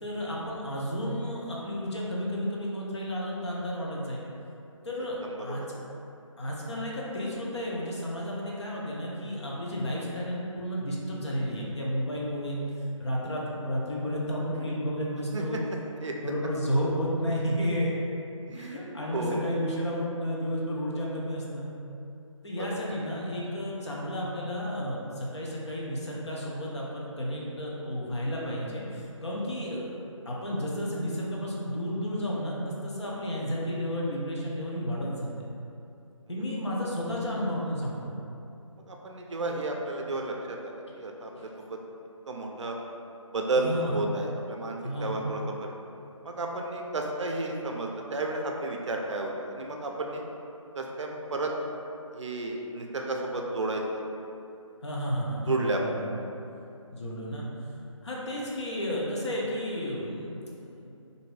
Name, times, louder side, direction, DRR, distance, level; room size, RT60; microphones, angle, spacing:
voice 1, 0.0-4.3 4.8-5.6 6.4-12.6 13.0-15.6 16.2-18.0 18.5-21.7 22.4-32.6 32.8-35.3 36.3-38.2 41.4-41.5 43.6-44.0 44.8-45.2 54.8-56.1 56.9-57.5 58.0-60.9, equal, 55° left, -4 dB, 0.6 m, -32 dB
voice 2, 5.2-5.7 9.5-9.6 15.3-15.4 16.0-16.1 18.5-18.8 19.1-19.5 22.5-23.0 29.2-29.4 33.0-33.3 38.8-41.8 42.3-42.8 43.3-45.8 46.2-50.3 50.7-51.5 52.1-54.0 55.5-56.0, right 2 dB, 60° right, 1 dB, 0.4 m, -32 dB
2.6 x 2.6 x 3.2 m, 2.7 s
figure-of-eight pair, 175°, 17 cm